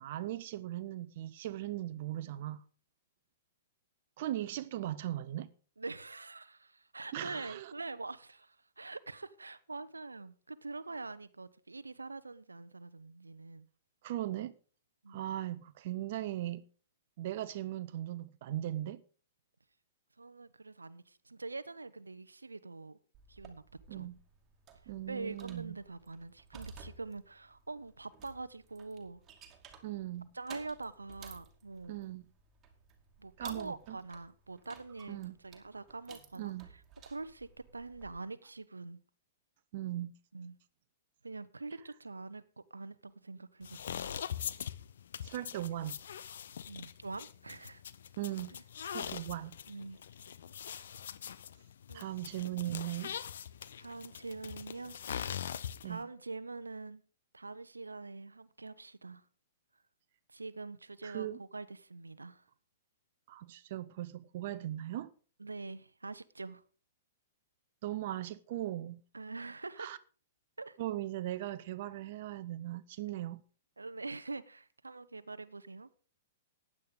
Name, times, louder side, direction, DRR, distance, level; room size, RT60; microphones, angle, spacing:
voice 1, 0.0-2.6 4.2-5.5 7.1-7.7 14.0-14.5 15.1-16.6 17.2-19.0 23.9-24.2 24.9-25.8 29.8-30.3 31.9-32.3 33.4-34.0 35.1-35.4 36.4-36.7 39.7-40.1 45.2-46.0 48.2-49.6 51.9-53.1 55.8-56.0 61.0-61.4 63.3-65.1 67.8-69.0 69.8-70.0 70.8-73.4, right 13 dB, 45° right, 0.7 m, -38 dB
voice 2, 5.8-13.7 15.0-15.3 20.2-23.0 23.3-23.6 23.9-24.1 25.1-29.2 30.3-32.0 33.2-36.5 37.1-37.5 37.7-39.0 40.3-40.5 41.2-43.9 46.7-47.8 49.7-50.0 51.9-52.1 52.4-52.5 53.8-55.0 55.5-57.0 57.3-59.2 60.3-62.4 65.4-66.6 69.1-69.9 70.6-70.8 73.8-75.9, right 3 dB, 80° right, 0.7 m, -44 dB
sound 1, 23.1-38.2, right 6 dB, 20° right, 2.5 m, -56 dB
sound 2, 43.6-56.0, left 9 dB, 60° left, 0.7 m, -42 dB
15.0 x 10.0 x 3.8 m
figure-of-eight pair, 110°, 0 cm